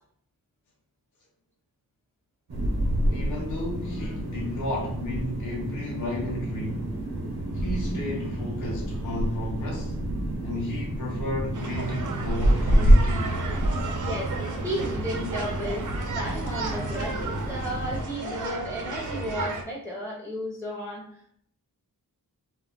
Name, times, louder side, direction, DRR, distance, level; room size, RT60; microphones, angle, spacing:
sound 1, 2.5-18.0, right 1 dB, 85° right, 0.8 m, -27 dB
voice 1, 3.1-6.9 7.5-10.0 10.4-13.4, left 1 dB, 55° left, 0.6 m, -33 dB
sound 2, 11.5-19.6, right 3 dB, 55° right, 0.5 m, -33 dB
voice 2, 14.0-21.1, equal, 5° left, 0.5 m, -34 dB
2.2 x 2.0 x 3.5 m
wide cardioid pair, 110°, 37 cm